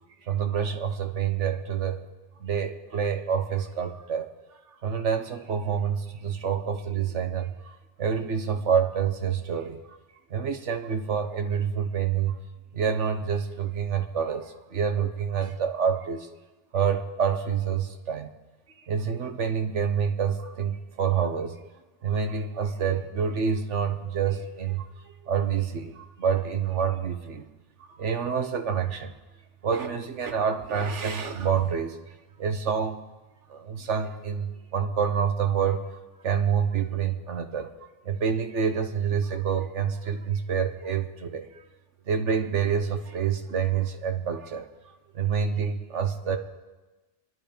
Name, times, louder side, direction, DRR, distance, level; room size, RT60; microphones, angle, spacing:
voice 1, 0.2-2.1 2.4-4.3 4.8-10.0 10.3-12.4 12.7-16.3 16.7-18.3 18.8-21.6 22.0-27.5 27.8-29.1 29.6-32.0 32.4-33.0 33.5-36.0 36.2-41.6 42.1-44.7 45.1-46.4, right 7 dB, 85° right, 7 dB, 1.5 m, -27 dB
25.5 x 11.0 x 5.1 m, 1.2 s
omnidirectional pair, 1.2 m